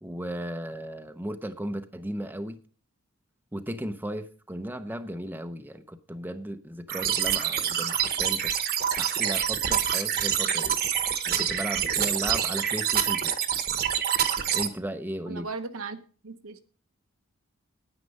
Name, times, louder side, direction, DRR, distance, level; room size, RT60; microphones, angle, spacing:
voice 1, 0.0-2.6 3.5-8.5 8.9-10.8 11.3-13.4 14.5-15.5, right 1 dB, 10° right, 8 dB, 0.6 m, -35 dB
sound 1, 6.9-14.7, right 9 dB, 50° right, 1.1 m, -26 dB
voice 2, 15.3-16.0 16.2-16.6, right 3 dB, 80° right, 8 dB, 1.0 m, -36 dB
9.7 x 9.0 x 5.3 m, 0.40 s
head